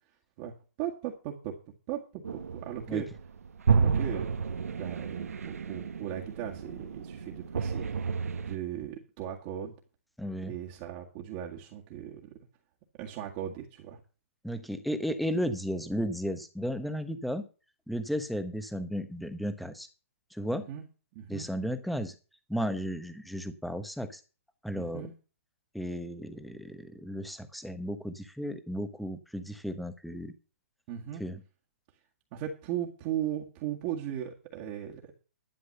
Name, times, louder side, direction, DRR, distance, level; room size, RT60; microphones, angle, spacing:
voice 1, 0.4-1.6 1.9-3.1 3.7-4.3 4.8-8.1 8.4-9.7 10.5-12.2 13.0-14.0 20.7-20.9 21.2-21.5 24.9-25.1 30.9-31.2 32.3-35.1, right 10 dB, 30° right, -1 dB, 1.8 m, -37 dB
sound 1, 2.2-8.6, right 5 dB, 85° right, 1.4 m, -31 dB
voice 2, 10.2-10.5 14.4-17.5 17.9-19.9 20.3-20.7 21.3-22.1 22.5-24.2 24.6-25.1 25.7-30.3 31.2-31.4, equal, ahead, 10 dB, 1.0 m, -34 dB
11.5 x 7.5 x 6.7 m, 0.35 s
hypercardioid pair, 150°, 8 cm